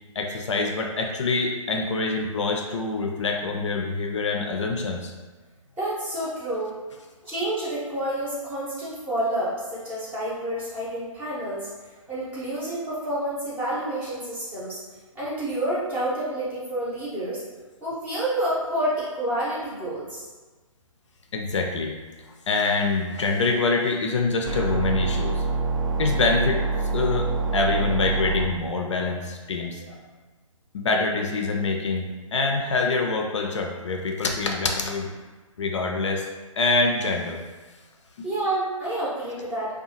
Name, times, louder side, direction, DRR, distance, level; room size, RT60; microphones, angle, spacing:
voice 1, 0.2-5.1 21.3-21.9 22.5-25.5 26.0-30.0 30.7-35.1 35.6-36.3 36.6-37.4 38.2-38.3, left 3 dB, 60° left, 2 dB, 0.4 m, -25 dB
voice 2, 5.8-6.7 7.3-11.7 12.1-14.8 15.1-17.4 17.8-20.2 38.2-39.7, right 1 dB, 10° right, -9 dB, 0.6 m, -29 dB
sound 1, 24.5-28.5, right 3 dB, 75° right, 0.5 m, -25 dB
2.6 x 2.2 x 2.8 m, 1.3 s
figure-of-eight pair, 135°, 18 cm